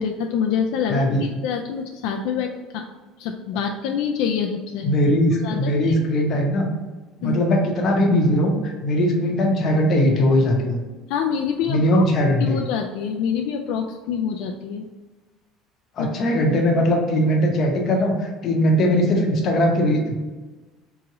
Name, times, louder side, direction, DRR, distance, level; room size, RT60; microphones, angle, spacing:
voice 1, 0.0-2.9 3.2-4.9 5.4-5.9 7.2-7.4 11.1-12.0 12.4-14.8 16.0-16.1, left 7 dB, 75° left, 3 dB, 0.3 m, -26 dB
voice 2, 0.9-1.2 4.8-6.7 7.2-10.8 11.7-12.6 16.0-20.1, equal, 35° left, 1 dB, 0.8 m, -20 dB
3.7 x 3.0 x 4.7 m, 1.2 s
cardioid pair, 165°, 0 cm